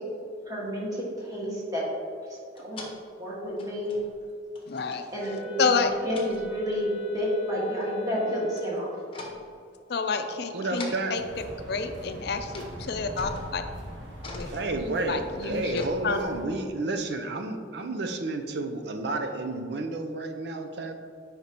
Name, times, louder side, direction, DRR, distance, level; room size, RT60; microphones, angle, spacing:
voice 1, 0.5-1.8 2.6-2.8 3.2-4.0 5.1-8.9, equal, 20° right, -6 dB, 1.7 m, -30 dB
sound 1, 2.6-3.0 3.6-4.2 4.6-5.0 5.7-6.7 8.6-8.8 9.1-9.5 10.7-11.1 12.0-12.1 12.3-12.7 13.0-16.6, left 2 dB, 30° left, 0.9 m, -43 dB
voice 2, 4.7-5.0 5.6-5.9 9.9-11.2 11.7-13.6 14.3-14.5 15.0-16.2, left 4 dB, 60° left, 7 dB, 0.5 m, -29 dB
Wind instrument woodwind instrument, 5.2-9.0, right 4 dB, 5° right, 1.4 m, -42 dB
voice 3, 10.5-11.1 14.5-21.0, right 2 dB, 65° right, 5 dB, 0.5 m, -31 dB
sound 2, 11.1-16.4, equal, 90° right, 1.2 m, -43 dB
9.1 x 5.1 x 2.9 m, 2.4 s
head